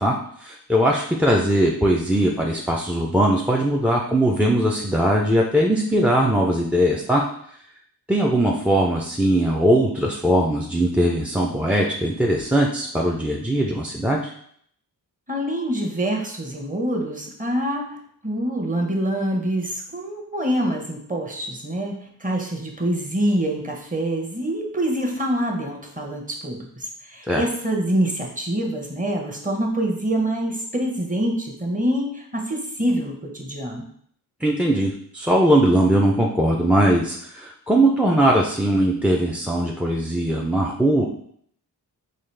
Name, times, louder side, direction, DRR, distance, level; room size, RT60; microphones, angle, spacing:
voice 1, 0.0-7.2 8.1-14.3 27.3-27.4 34.4-41.0, right 1 dB, 5° right, -1 dB, 0.4 m, -20 dB
voice 2, 15.3-18.0 18.2-33.9, right 1 dB, 20° right, 1 dB, 0.9 m, -25 dB
3.9 x 2.4 x 3.2 m, 0.64 s
cardioid pair, 60°, 41 cm